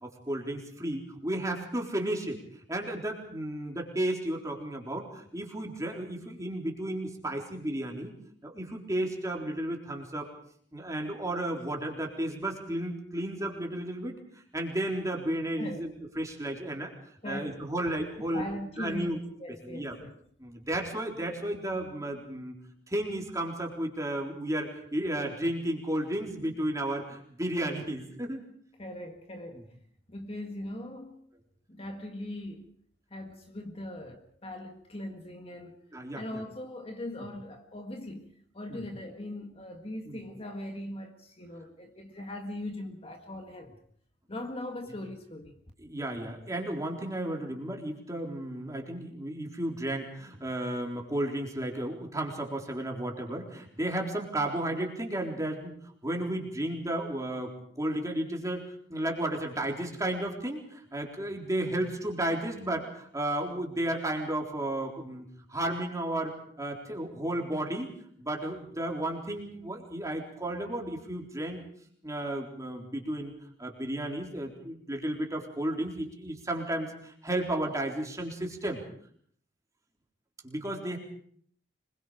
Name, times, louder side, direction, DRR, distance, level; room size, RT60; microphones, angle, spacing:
voice 1, 0.0-2.4 2.7-8.1 8.4-10.3 10.7-14.2 14.5-15.9 16.2-16.9 17.2-18.4 18.8-19.2 19.6-20.0 20.4-22.6 22.9-28.4 29.5-29.6 35.9-36.4 38.7-38.8 40.1-40.2 45.8-55.7 56.0-57.5 57.8-58.6 58.9-67.9 68.2-71.6 72.0-73.3 73.6-78.8 80.4-81.0, right 1 dB, 20° right, 3.9 m, -33 dB
voice 2, 17.2-17.6 18.3-20.1 28.8-29.7 30.1-31.2 31.7-32.7 33.1-35.8 36.1-43.8 44.3-45.6, left 1 dB, 35° left, 1.8 m, -40 dB
25.5 x 22.0 x 5.1 m
head